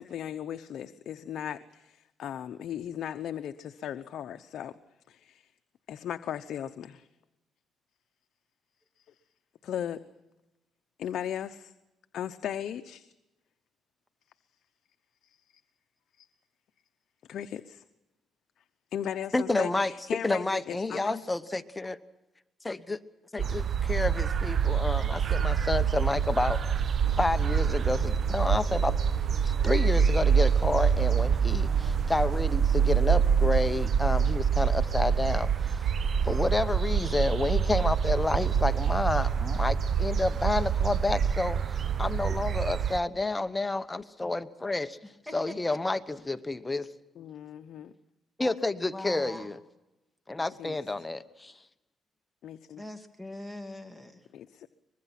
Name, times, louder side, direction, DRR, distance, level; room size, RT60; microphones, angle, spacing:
voice 1, 0.0-4.7 5.1-5.5 5.9-7.1 9.6-10.0 11.0-11.7 12.1-13.1 15.2-15.4 16.2-16.3 17.3-17.8 18.9-21.2 47.2-47.9 50.6-50.8 52.4-52.8 54.3-54.7, left 9 dB, 70° left, 8 dB, 0.8 m, -37 dB
voice 2, 19.3-19.9 20.2-22.0 22.6-23.0 23.3-23.4 23.9-26.6 27.2-29.0 29.4-35.9 36.2-45.0 45.3-46.9 48.4-49.6 50.3-51.5, left 2 dB, 15° left, 11 dB, 1.0 m, -30 dB
sound 1, 23.4-43.0, right 7 dB, 50° right, 0.8 m, -26 dB
voice 3, 48.9-49.5 52.8-54.2, left 1 dB, 5° right, 6 dB, 2.6 m, -42 dB
24.0 x 21.5 x 5.9 m, 0.99 s
cardioid pair, 90°, 0 cm